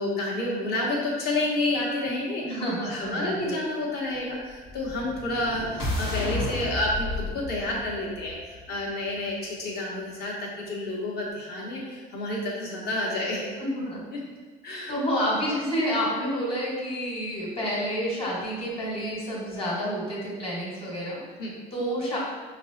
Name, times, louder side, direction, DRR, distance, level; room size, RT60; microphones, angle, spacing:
voice 1, 0.0-2.4 2.8-13.5 14.1-14.2 14.6-14.9 21.4-21.5, left 1 dB, 50° left, -3 dB, 1.1 m, -29 dB
voice 2, 2.4-3.6 13.6-14.0 14.9-21.2 21.7-22.2, equal, 25° left, -5 dB, 1.4 m, -29 dB
sound 1, 4.6-8.9, left 2 dB, 85° left, 1.2 m, -33 dB
5.1 x 2.1 x 2.7 m, 1.4 s
supercardioid pair, 95°, 21 cm